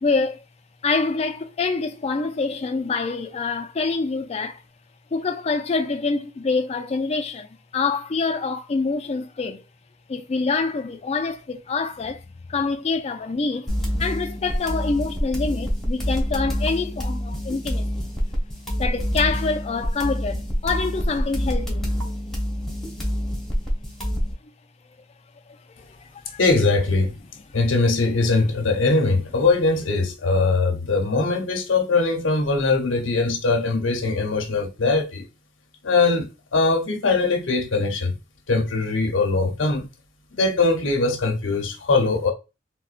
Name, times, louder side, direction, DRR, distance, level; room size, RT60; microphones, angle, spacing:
voice 1, 0.0-0.4 0.8-4.6 5.1-9.6 10.1-12.2 12.5-13.7 14.0-18.1 18.8-21.9 24.4-24.5 25.5-26.4, left 4 dB, 35° left, 0.3 m, -26 dB
sound 1, 13.7-24.3, equal, ahead, 0.9 m, -26 dB
voice 2, 26.4-27.1 27.5-35.2 35.8-38.1 38.5-39.9 40.3-42.3, left 3 dB, 90° left, 0.7 m, -21 dB
3.7 x 2.2 x 2.4 m
head